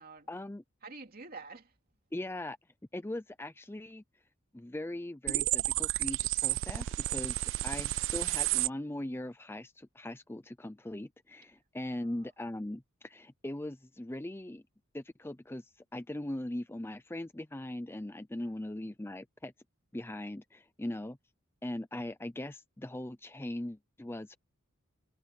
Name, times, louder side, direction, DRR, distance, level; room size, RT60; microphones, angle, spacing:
voice 1, 0.3-0.6 2.1-2.6 2.9-4.0 4.5-7.4 7.6-14.6 14.9-19.5 19.9-21.2 21.6-24.4, left 1 dB, 10° left, 0.5 m, -40 dB
voice 2, 0.8-1.8 7.5-7.7 11.8-12.3 18.4-18.5, right 3 dB, 45° right, 2.7 m, -49 dB
sound 1, 5.3-8.7, right 15 dB, 60° right, 0.3 m, -31 dB
head